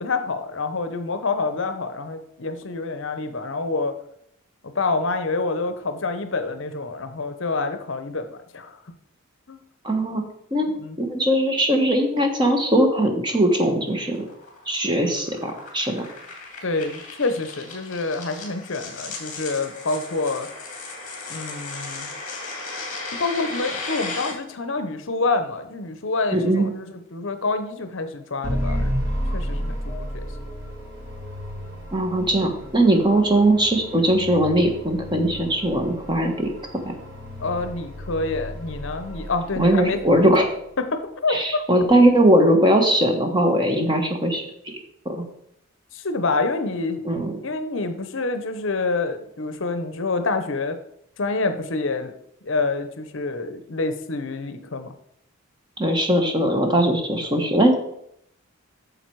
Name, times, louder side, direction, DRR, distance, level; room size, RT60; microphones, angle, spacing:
voice 1, 0.0-3.9 4.6-8.8 9.5-9.6 10.8-11.0 16.6-20.5 21.3-22.1 23.2-26.9 27.1-28.9 29.3-30.3 37.4-40.3 40.8-41.6 45.9-47.0 47.4-50.8 51.2-52.1 52.4-54.9, left 3 dB, 60° left, 9 dB, 0.8 m, -27 dB
voice 2, 9.8-10.2 10.5-10.7 11.0-14.2 14.7-16.0 26.3-26.7 31.9-36.5 39.6-40.4 41.3-44.4 45.0-45.2 47.0-47.3 55.8-57.7, right 1 dB, 20° right, 4 dB, 1.3 m, -20 dB
sound 1, 13.6-24.3, left 3 dB, 35° left, 2.4 m, -36 dB
sound 2, 28.4-40.6, equal, 60° right, 2.9 m, -32 dB
9.0 x 6.7 x 4.7 m, 0.73 s
head